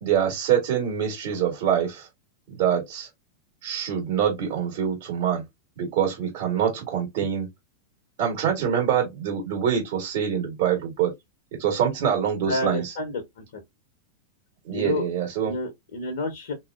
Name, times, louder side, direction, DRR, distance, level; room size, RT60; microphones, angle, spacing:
voice 1, 0.0-2.1 2.5-3.1 3.6-5.4 5.8-7.5 8.2-11.1 11.6-12.8 14.6-15.5, right 8 dB, 55° right, 1.4 m, -25 dB
voice 2, 12.5-13.6 14.7-15.1 15.4-16.5, left 2 dB, 60° left, 0.7 m, -30 dB
3.7 x 2.8 x 2.3 m
figure-of-eight pair, 90°, 0 cm